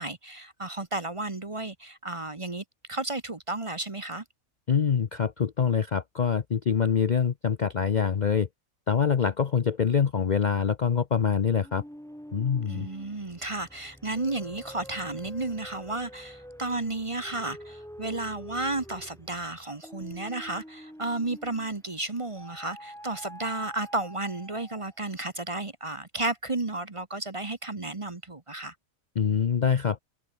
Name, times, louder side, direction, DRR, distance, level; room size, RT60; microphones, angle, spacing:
voice 1, 0.0-4.2 12.7-28.7, right 2 dB, 25° right, 1.1 m, -33 dB
voice 2, 4.7-8.5 8.9-11.8 12.3-12.9 29.2-30.0, left 7 dB, 45° left, 0.7 m, -25 dB
sound 1, 11.6-21.8 22.4-25.1, equal, ahead, 2.6 m, -47 dB
omnidirectional pair, 1.5 m